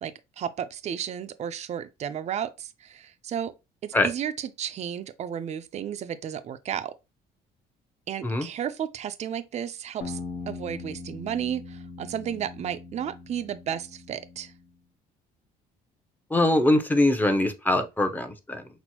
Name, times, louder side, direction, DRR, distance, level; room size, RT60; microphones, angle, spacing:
voice 1, 0.0-3.5 3.8-6.9 8.1-10.2 10.5-14.5, right 9 dB, 40° right, 0.5 m, -33 dB
sound 1, 10.0-14.7, left 4 dB, 65° left, 1.0 m, -40 dB
voice 2, 16.3-18.7, left 1 dB, 10° left, 0.7 m, -23 dB
6.0 x 2.0 x 2.9 m
cardioid pair, 110°, 17 cm